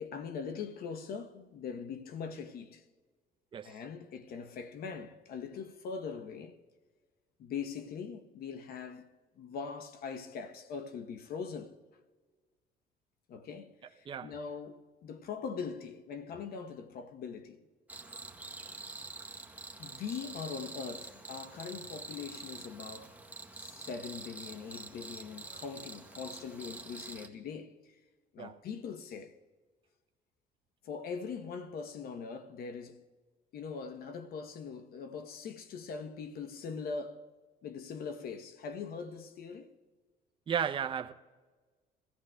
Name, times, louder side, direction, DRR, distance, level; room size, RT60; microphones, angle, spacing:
voice 1, 0.0-2.8 3.6-6.6 7.4-9.1 9.4-11.8 13.3-17.6 19.8-23.1 23.6-28.0 28.3-29.4 30.8-33.0 33.5-37.3 37.6-39.8, left 5 dB, 65° left, 0.8 m, -42 dB
Cricket, 17.9-27.3, right 3 dB, 10° right, 0.9 m, -46 dB
voice 2, 40.5-41.1, right 8 dB, 30° right, 0.5 m, -34 dB
23.5 x 14.5 x 2.2 m
cardioid pair, 110°, 17 cm